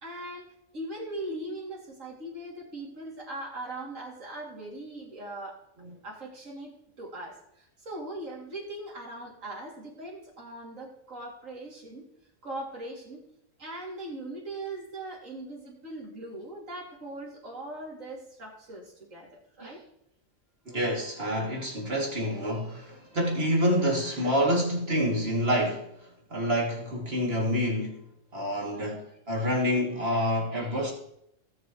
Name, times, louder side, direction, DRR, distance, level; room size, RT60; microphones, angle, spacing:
voice 1, 0.0-5.6 6.0-12.1 12.4-13.2 13.6-19.8, right 1 dB, 85° right, 3.1 m, -40 dB
voice 2, 20.7-28.0 28.3-30.9, equal, 50° right, 2.8 m, -28 dB
18.5 x 7.0 x 3.1 m
omnidirectional pair, 1.3 m